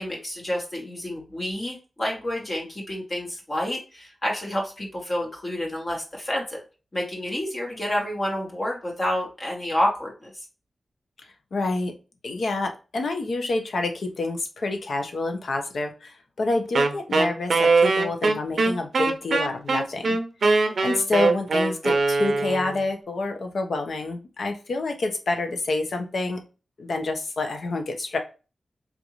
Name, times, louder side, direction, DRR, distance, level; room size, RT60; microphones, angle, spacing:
voice 1, 0.0-6.6 6.9-10.3, left 1 dB, 35° left, -2 dB, 1.0 m, -29 dB
voice 2, 11.5-11.9 12.2-20.2 20.5-26.4 26.8-28.2, left 2 dB, 75° left, 4 dB, 0.8 m, -28 dB
Wind instrument woodwind instrument, 16.7-22.8, right 3 dB, 75° right, 0.5 m, -21 dB
3.7 x 2.6 x 3.0 m, 0.32 s
wide cardioid pair, 90°, 0 cm